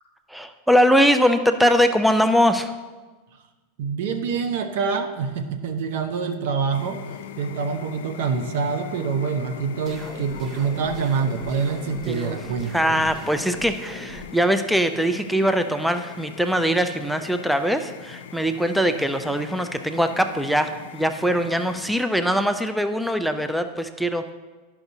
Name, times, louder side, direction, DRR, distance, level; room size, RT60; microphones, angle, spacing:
voice 1, 0.3-2.7 12.1-12.4 12.7-24.3, equal, ahead, 8 dB, 0.4 m, -22 dB
voice 2, 3.8-7.0 7.4-13.1, right 5 dB, 70° right, 7 dB, 0.8 m, -26 dB
sound 1, 6.7-22.0, left 9 dB, 75° left, 0.4 m, -41 dB
sound 2, 9.9-14.2, right 1 dB, 35° right, 0.9 m, -41 dB
11.0 x 5.8 x 2.7 m, 1.3 s
hypercardioid pair, 105°, 0 cm